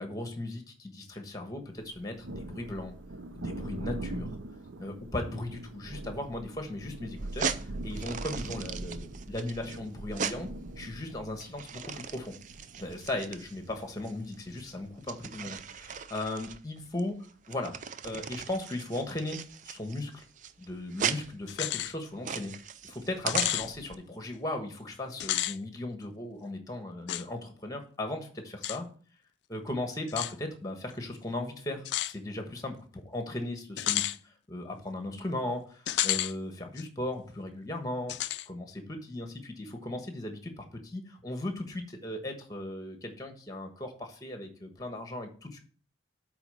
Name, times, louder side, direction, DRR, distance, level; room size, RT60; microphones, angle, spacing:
voice 1, 0.0-3.0 3.3-4.3 4.8-7.5 7.8-10.5 10.8-12.3 12.8-17.1 17.5-19.4 19.6-20.2 20.6-22.5 22.8-28.9 29.5-38.1 38.5-45.6, left 1 dB, 20° left, 5 dB, 1.2 m, -37 dB
Thunder, 1.8-15.0, right 2 dB, 85° right, 0.7 m, -42 dB
sound 1, 7.2-23.9, right 7 dB, 40° right, 0.4 m, -39 dB
sound 2, 21.5-21.9 22.4-22.5 23.3-23.7 25.1-25.6 27.1-27.2 28.6-28.8 30.1-30.3 31.9-32.1 33.8-34.2 35.9-36.3 36.8-36.9 38.1-38.5, left 14 dB, 65° left, 0.3 m, -30 dB
8.3 x 3.8 x 5.4 m, 0.42 s
head